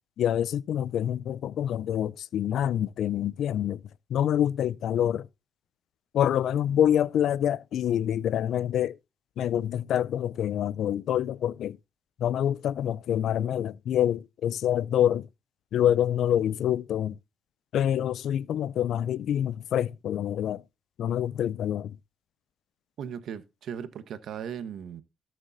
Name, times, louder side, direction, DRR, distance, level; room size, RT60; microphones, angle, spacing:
voice 1, 0.2-3.8 4.1-5.3 6.1-9.0 9.4-11.8 12.2-15.3 15.7-17.2 17.7-20.6 21.0-22.0, left 10 dB, 70° left, 0.4 m, -26 dB
voice 2, 23.0-25.0, right 8 dB, 70° right, 1.1 m, -37 dB
17.0 x 6.7 x 2.6 m
cardioid pair, 90°, 0 cm